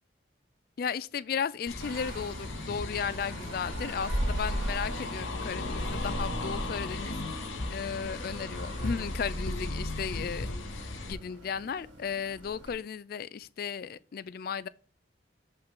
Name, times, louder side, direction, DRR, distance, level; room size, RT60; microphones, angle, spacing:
voice 1, 0.8-7.1 7.7-10.5 11.0-14.7, left 6 dB, 50° left, 0.3 m, -35 dB
sound 1, 1.7-11.1, left 2 dB, 80° left, 1.0 m, -36 dB
sound 2, 1.8-12.8, right 1 dB, 75° right, 2.1 m, -39 dB
6.9 x 5.6 x 3.7 m
head